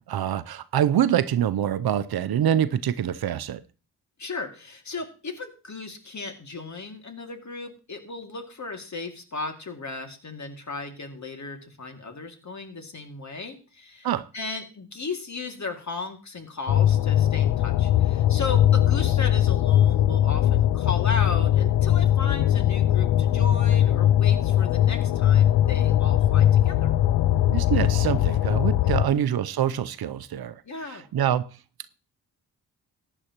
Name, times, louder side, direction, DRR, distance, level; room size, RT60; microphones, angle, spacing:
voice 1, 0.1-3.6 14.0-14.3 27.5-30.6 30.9-31.5, right 10 dB, 65° right, 0.7 m, -25 dB
voice 2, 4.2-14.1 14.3-26.9 28.8-29.1 30.6-31.0, left 3 dB, 45° left, 2.4 m, -36 dB
sound 1, 16.7-29.1, left 11 dB, 75° left, 0.5 m, -20 dB
15.0 x 10.0 x 3.0 m
cardioid pair, 60°, 40 cm